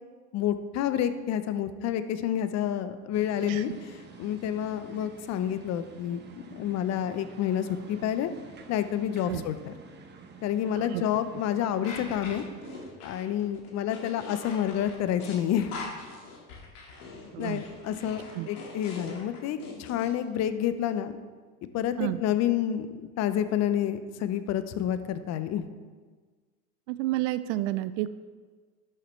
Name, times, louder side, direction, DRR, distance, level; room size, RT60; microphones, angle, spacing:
voice 1, 0.3-6.2 6.5-8.3 8.7-9.7 10.4-12.4 13.0-15.7 17.4-21.2 21.7-22.9 23.2-25.6, left 10 dB, 35° left, 12 dB, 0.7 m, -29 dB
sound 1, 3.1-12.9, right 4 dB, 25° right, 1.0 m, -49 dB
sound 2, 11.8-20.1, left 4 dB, 75° left, 2.0 m, -42 dB
voice 2, 17.3-17.6 18.3-18.5 22.0-22.2 26.9-28.1, right 16 dB, 55° right, 14 dB, 0.5 m, -30 dB
11.5 x 6.5 x 3.2 m, 1.5 s
hypercardioid pair, 90°, 46 cm